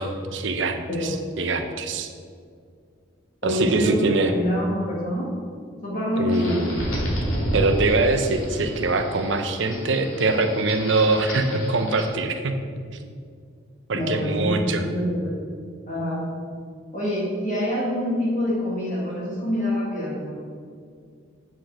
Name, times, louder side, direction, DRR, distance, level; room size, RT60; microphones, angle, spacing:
voice 1, 0.0-2.1 3.4-4.3 6.2-6.8 7.5-12.5 13.0-13.1 13.9-14.9, right 3 dB, 65° right, 6 dB, 0.7 m, -23 dB
voice 2, 3.4-5.3 5.8-6.6 13.9-15.4 15.9-16.4 16.9-20.3, equal, 40° left, -7 dB, 1.8 m, -26 dB
sound 1, 6.3-12.1, equal, 85° left, 2.4 m, -30 dB
7.8 x 6.5 x 4.7 m, 2.2 s
head